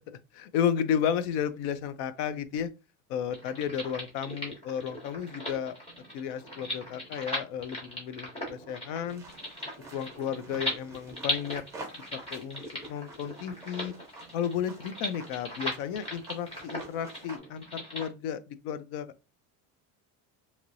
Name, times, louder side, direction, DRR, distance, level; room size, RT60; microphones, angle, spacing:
voice 1, 0.1-2.7 3.1-5.7 6.1-9.2 9.9-11.6 12.3-12.6 12.9-13.9 14.3-19.1, left 8 dB, 65° left, 0.5 m, -33 dB
sound 1, 3.3-18.1, equal, 15° left, 1.1 m, -38 dB
sound 2, 9.1-17.4, right 2 dB, 5° right, 0.6 m, -50 dB
3.1 x 2.9 x 2.5 m
cardioid pair, 170°, 39 cm